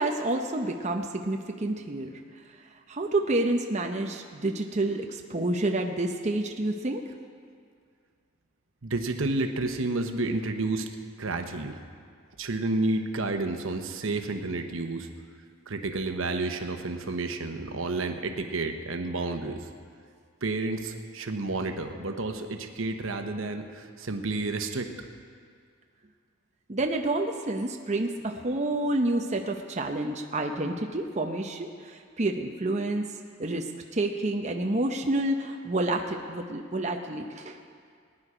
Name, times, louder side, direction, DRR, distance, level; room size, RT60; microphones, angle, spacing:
voice 1, 0.0-2.2 2.9-7.0 26.7-33.1 33.4-37.6, right 2 dB, 35° right, 3 dB, 0.7 m, -29 dB
voice 2, 8.8-10.9 11.2-11.8 12.4-15.1 15.7-19.7 20.4-24.9, right 2 dB, 80° right, 6 dB, 1.0 m, -30 dB
19.5 x 10.0 x 5.0 m, 2.1 s
head